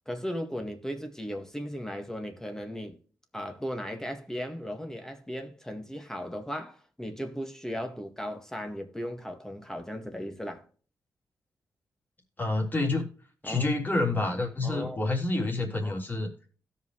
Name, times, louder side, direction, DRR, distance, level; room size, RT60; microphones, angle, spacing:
voice 1, 0.1-3.0 3.3-10.7 13.4-13.7 14.6-15.1, equal, 5° left, 1.8 m, -36 dB
voice 2, 12.4-13.1 13.4-16.3, left 2 dB, 30° left, 3.3 m, -28 dB
17.0 x 5.6 x 3.2 m
cardioid pair, 90°, 7 cm